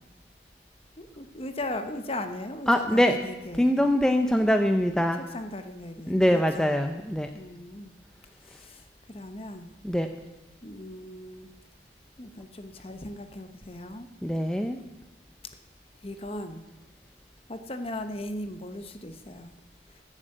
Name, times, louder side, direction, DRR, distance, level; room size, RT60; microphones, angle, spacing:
voice 1, 1.0-3.7 5.1-6.8 7.3-7.9 8.5-8.8 9.1-9.7 10.6-11.5 12.2-14.1 16.0-16.6 17.5-19.5, left 1 dB, 30° left, 8 dB, 0.9 m, -38 dB
voice 2, 2.7-3.1 3.6-5.2 6.1-7.3 9.8-10.1 14.2-14.8, equal, 5° left, 5 dB, 0.5 m, -23 dB
14.5 x 7.4 x 7.9 m, 1.0 s
head